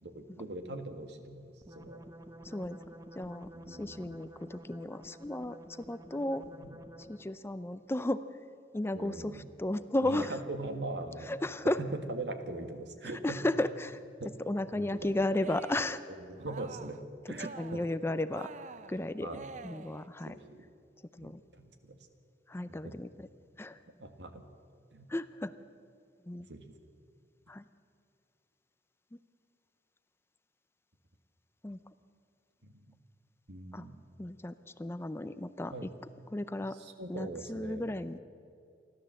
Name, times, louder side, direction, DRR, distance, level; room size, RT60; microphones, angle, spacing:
voice 1, 0.0-2.0 3.5-4.2 6.5-6.8 8.9-9.4 10.0-11.3 11.8-13.4 14.2-14.3 14.7-15.4 16.1-16.9 17.3-17.8 19.2-19.5 20.2-20.6 21.2-22.0 22.7-23.0 24.0-24.4 24.9-25.1 26.5-26.6 32.6-32.9 33.5-34.0 35.7-35.9 36.7-37.9, right 2 dB, 70° right, 7 dB, 1.7 m, -41 dB
sound 1, 1.6-7.4, right 1 dB, 20° right, 1.0 m, -51 dB
voice 2, 2.4-2.8 3.2-6.4 7.1-8.2 8.7-10.4 11.3-11.8 13.2-14.0 14.5-16.0 17.4-18.5 18.9-19.3 19.6-20.4 21.2-21.4 22.5-23.1 23.6-23.8 25.1-25.5 26.3-26.5 27.5-27.6 31.6-31.8 33.7-33.8 34.2-35.9 36.3-36.8 37.1-38.2, left 1 dB, 15° left, 13 dB, 0.5 m, -34 dB
Cheering, 15.3-16.0 16.3-17.0 17.3-18.0 18.3-20.1, right 4 dB, 45° right, 0.6 m, -47 dB
28.5 x 12.5 x 7.6 m, 2.4 s
head